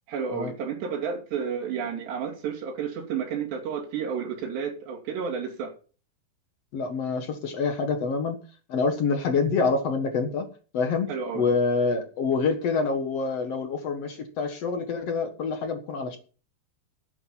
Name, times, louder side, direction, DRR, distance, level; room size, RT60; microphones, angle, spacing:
voice 1, 0.1-5.7 11.1-11.5, right 6 dB, 80° right, -1 dB, 4.9 m, -31 dB
voice 2, 6.7-8.4 8.7-10.5 10.7-16.2, left 4 dB, 60° left, 7 dB, 1.7 m, -26 dB
12.0 x 9.4 x 5.6 m, 0.38 s
omnidirectional pair, 4.9 m